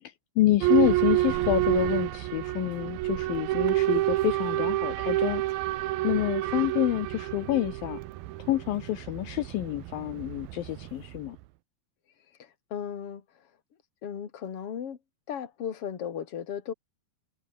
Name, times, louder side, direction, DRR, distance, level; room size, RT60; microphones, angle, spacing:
voice 1, 0.0-5.4 6.0-8.0 8.4-11.4, left 15 dB, 80° left, 2.0 m, -28 dB
Boat Water vehicle / Alarm, 0.6-11.3, right 16 dB, 80° right, 2.1 m, -28 dB
voice 2, 12.4-13.2 14.0-15.0 15.3-16.7, left 8 dB, 40° left, 2.5 m, -36 dB
omnidirectional pair, 5.5 m